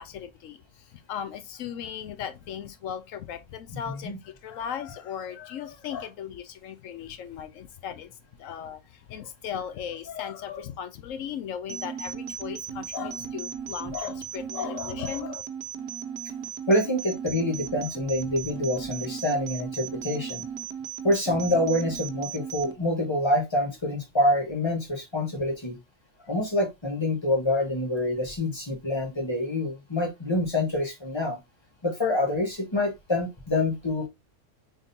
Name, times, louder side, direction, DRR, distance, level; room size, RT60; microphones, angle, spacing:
voice 1, 0.0-15.4, left 8 dB, 70° left, 0.9 m, -37 dB
sound 1, 11.7-22.7, right 8 dB, 80° right, 1.2 m, -36 dB
voice 2, 16.7-20.4 21.0-25.8 26.3-31.4 31.8-34.1, left 1 dB, 20° left, 1.1 m, -26 dB
3.8 x 3.7 x 2.6 m
omnidirectional pair, 1.5 m